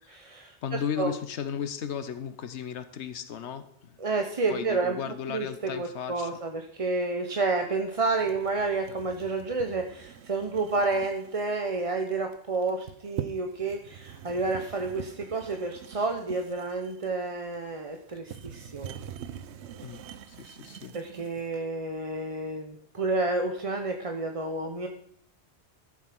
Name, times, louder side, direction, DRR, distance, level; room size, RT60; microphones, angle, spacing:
voice 1, 0.1-1.1 4.0-18.9 20.9-24.9, right 3 dB, 35° right, 4 dB, 0.9 m, -30 dB
voice 2, 0.6-4.0 4.5-6.3 19.8-20.0 20.3-21.0, left 8 dB, 80° left, 11 dB, 1.2 m, -35 dB
sound 1, 8.1-21.5, right 9 dB, 80° right, 0.9 m, -44 dB
13.5 x 7.6 x 6.0 m, 0.71 s
omnidirectional pair, 1.1 m